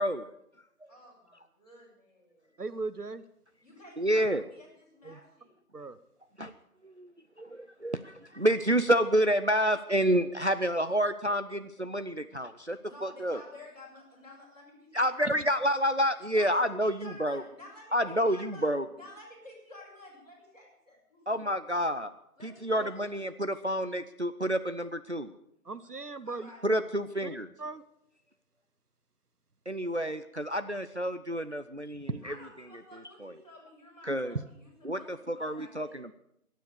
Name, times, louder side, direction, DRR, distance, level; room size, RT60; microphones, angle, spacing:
voice 1, 0.9-2.5 3.6-5.5 12.8-15.1 16.3-21.4 22.4-23.2 26.2-26.6 32.2-36.0, left 1 dB, 25° left, -6 dB, 6.6 m, -52 dB
voice 2, 2.6-3.2 5.0-5.2 5.7-6.0 22.8-22.9 25.6-26.5 27.2-27.3 27.6-27.8 32.1-32.2 34.3-34.4, right 3 dB, 80° right, 13 dB, 1.1 m, -37 dB
voice 3, 4.0-4.4 6.4-6.5 6.8-7.1 7.4-13.4 14.9-17.4 17.9-18.9 21.3-22.1 22.4-25.3 26.6-27.5 29.7-32.3 33.2-33.3 34.0-34.4 34.8-36.1, equal, 50° right, 11 dB, 0.6 m, -29 dB
23.0 x 9.3 x 6.7 m, 0.77 s
figure-of-eight pair, 170°, 45 cm